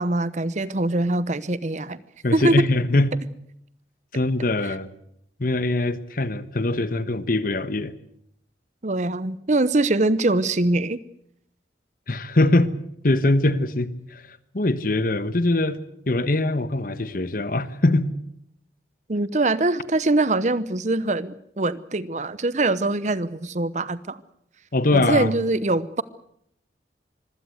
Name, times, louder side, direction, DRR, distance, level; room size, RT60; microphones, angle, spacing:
voice 1, 0.0-2.0 2.3-2.6 8.8-11.0 19.1-24.2 24.9-26.0, right 2 dB, 40° right, 17 dB, 0.9 m, -23 dB
voice 2, 2.2-3.1 4.1-4.9 5.4-7.9 12.1-12.7 13.0-15.8 16.1-18.1 24.7-25.3, left 2 dB, 50° left, 14 dB, 1.3 m, -22 dB
25.0 x 16.5 x 8.0 m, 0.72 s
head